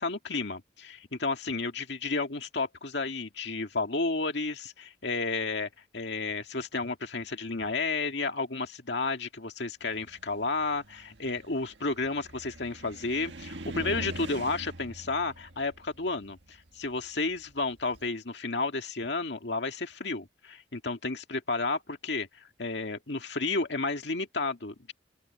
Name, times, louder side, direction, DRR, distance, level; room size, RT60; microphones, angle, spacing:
voice 1, 0.0-24.9, left 3 dB, 65° left, 2.1 m, -32 dB
Car, 9.9-18.1, right 1 dB, 70° right, 1.8 m, -44 dB
open air
head